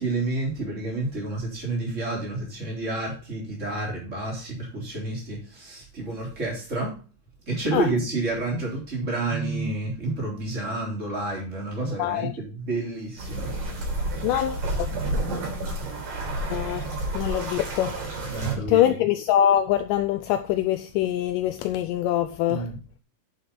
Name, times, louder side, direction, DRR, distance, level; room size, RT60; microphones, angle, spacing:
voice 1, 0.0-6.9 7.5-13.5 18.3-19.0 22.5-22.7, right 2 dB, 20° right, 3.7 m, -29 dB
voice 2, 12.0-12.3 14.2-14.9 16.5-22.7, left 11 dB, 80° left, 2.1 m, -24 dB
sound 1, 13.2-18.5, right 2 dB, 90° right, 5.3 m, -30 dB
9.2 x 6.6 x 4.2 m
omnidirectional pair, 3.9 m